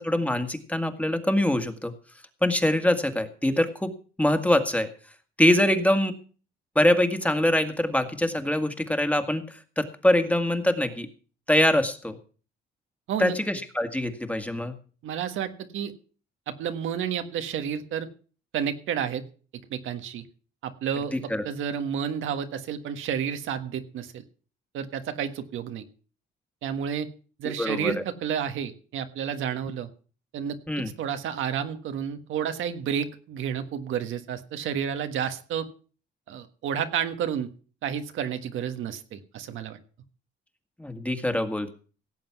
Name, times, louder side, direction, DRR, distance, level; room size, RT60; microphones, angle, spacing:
voice 1, 0.0-1.9 2.4-3.9 4.2-4.9 5.4-6.1 6.8-11.1 11.5-12.2 13.2-14.7 21.1-21.4 27.6-27.9 30.7-30.9 40.8-41.7, left 1 dB, 5° left, 8 dB, 1.8 m, -24 dB
voice 2, 15.0-15.9 16.5-18.1 18.5-19.2 19.7-20.3 20.6-21.1 21.4-24.2 24.7-25.8 26.6-27.1 27.4-29.9 30.3-35.7 36.3-37.5 37.8-39.8, right 8 dB, 80° right, 8 dB, 1.5 m, -30 dB
17.0 x 7.7 x 6.0 m, 0.40 s
cardioid pair, 90°, 20 cm